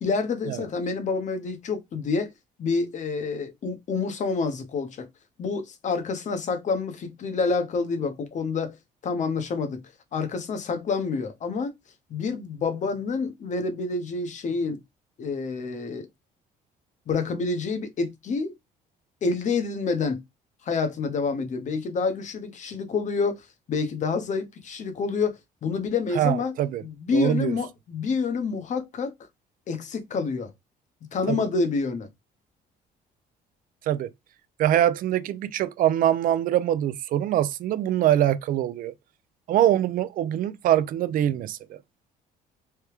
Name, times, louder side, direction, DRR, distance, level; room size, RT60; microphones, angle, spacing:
voice 1, 0.0-2.3 2.6-5.1 5.4-8.8 9.0-9.8 10.1-11.7 12.1-14.8 15.2-16.1 17.1-18.5 19.2-20.2 20.7-26.5 26.8-29.1 29.7-30.5 31.0-32.1, left 4 dB, 45° left, 0.9 m, -28 dB
voice 2, 26.2-26.8 27.1-27.6 31.3-31.4 33.9-34.1 34.6-38.9 39.5-41.8, right 11 dB, 55° right, 0.4 m, -23 dB
3.3 x 2.2 x 2.9 m
cardioid pair, 110°, 17 cm